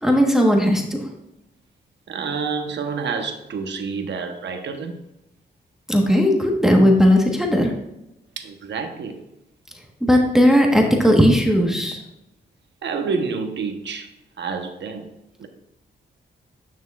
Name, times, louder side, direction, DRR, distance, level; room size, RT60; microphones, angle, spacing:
voice 1, 0.0-1.1 5.9-7.7 10.0-12.0, equal, ahead, 1 dB, 1.2 m, -17 dB
voice 2, 2.1-5.0 8.4-9.2 12.8-14.1 14.4-15.1 15.4-15.5, right 5 dB, 70° right, 5 dB, 1.0 m, -28 dB
9.4 x 6.2 x 2.4 m, 0.86 s
cardioid pair, 80°, 19 cm